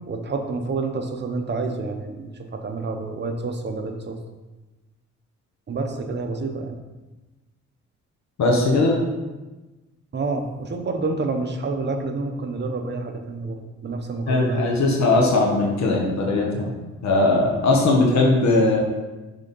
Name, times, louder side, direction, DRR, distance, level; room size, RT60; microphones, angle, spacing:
voice 1, 0.1-4.2 5.7-6.8 10.1-14.9, right 3 dB, 35° right, 5 dB, 0.9 m, -28 dB
voice 2, 8.4-9.0 14.3-16.7 17.0-18.8, left 2 dB, 65° left, -1 dB, 1.4 m, -19 dB
6.3 x 3.7 x 5.5 m, 1.2 s
cardioid pair, 90°, 30 cm